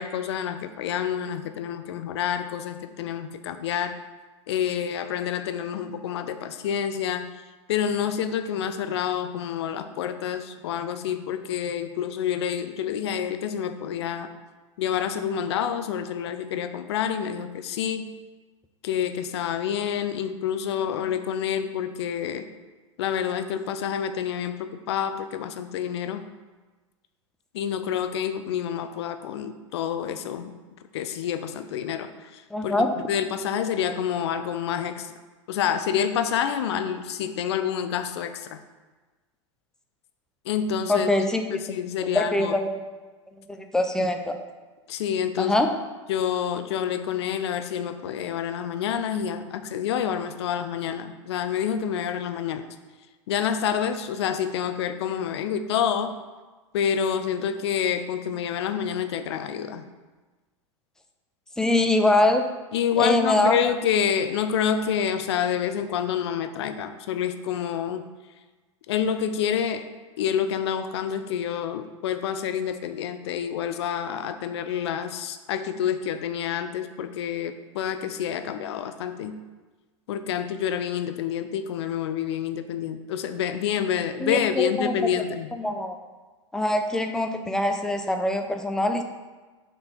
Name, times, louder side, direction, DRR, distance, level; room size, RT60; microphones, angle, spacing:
voice 1, 0.0-4.0 4.5-7.3 7.7-14.3 14.8-18.1 18.8-22.5 23.0-26.3 27.5-30.5 30.9-35.1 35.5-38.6 40.4-41.1 41.5-42.6 44.9-45.6 46.1-52.7 53.3-56.1 56.7-59.9 62.7-68.0 68.9-69.9 70.2-79.4 80.1-85.5, left 8 dB, 60° left, 10 dB, 0.6 m, -28 dB
voice 2, 32.5-32.9 40.9-41.4 42.1-42.8 43.5-44.4 45.4-45.7 61.6-62.4 63.0-63.6 84.2-85.1 85.6-86.0 86.5-89.0, left 1 dB, 5° left, 5 dB, 0.6 m, -23 dB
6.2 x 4.4 x 4.5 m, 1.3 s
figure-of-eight pair, 95°, 16 cm